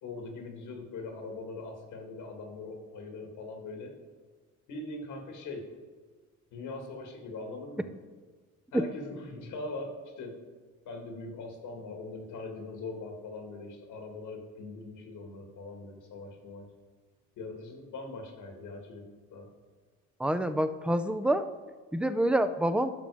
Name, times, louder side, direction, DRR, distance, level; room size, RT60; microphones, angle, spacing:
voice 1, 0.0-3.9 4.7-5.7 6.5-7.9 8.7-10.4 10.9-16.7 17.4-19.5, left 3 dB, 85° left, 3 dB, 2.0 m, -41 dB
voice 2, 20.2-21.4 21.9-22.9, right 1 dB, 5° right, 10 dB, 0.5 m, -27 dB
12.0 x 6.3 x 4.9 m, 1.4 s
cardioid pair, 90°, 30 cm